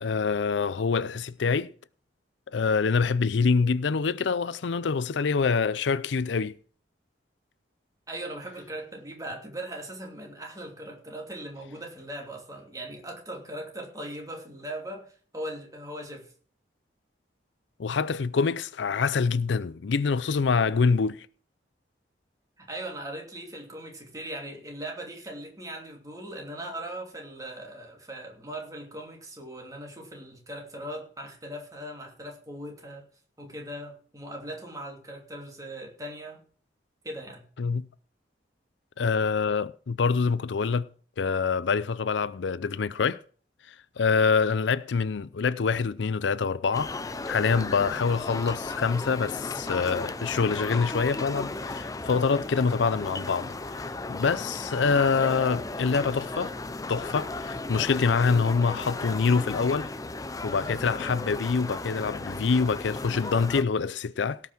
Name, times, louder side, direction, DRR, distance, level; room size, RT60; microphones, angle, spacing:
voice 1, 0.0-1.7 2.5-6.5 17.8-21.3 37.6-37.9 39.0-40.9 41.2-43.2 43.7-53.6 53.9-56.6 56.9-59.9 60.4-64.4, left 5 dB, 75° left, 0.5 m, -25 dB
voice 2, 8.1-15.0 15.3-16.3 22.6-33.0 33.4-36.4 37.0-37.4, right 1 dB, 20° right, 2.8 m, -39 dB
sound 1, 46.7-63.6, left 2 dB, 20° left, 0.6 m, -35 dB
17.0 x 5.9 x 6.0 m
head